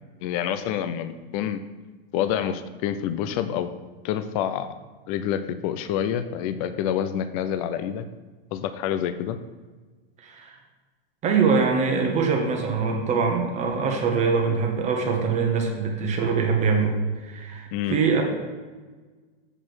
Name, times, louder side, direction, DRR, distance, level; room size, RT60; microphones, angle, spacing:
voice 1, 0.2-1.6 2.1-3.7 4.0-4.7 5.1-8.1 8.5-9.4 17.7-18.0, left 9 dB, 35° left, 11 dB, 0.5 m, -27 dB
voice 2, 10.2-10.6 11.2-18.2, right 5 dB, 25° right, 2 dB, 1.1 m, -23 dB
7.5 x 4.9 x 6.1 m, 1.4 s
supercardioid pair, 150°, 31 cm